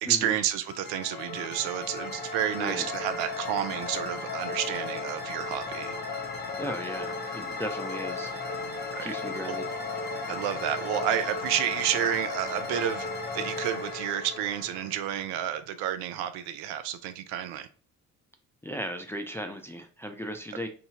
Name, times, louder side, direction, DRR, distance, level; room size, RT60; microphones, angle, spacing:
voice 1, 0.0-5.9 8.9-9.1 9.5-9.6 10.3-13.1 13.3-17.7, right 10 dB, 70° right, 0.5 m, -30 dB
sound 1, 0.7-15.5, left 3 dB, 25° left, 1.0 m, -35 dB
voice 2, 6.6-8.3 9.0-9.7 18.6-20.7, equal, 5° left, 0.3 m, -36 dB
2.9 x 2.7 x 3.5 m
hypercardioid pair, 50°, 41 cm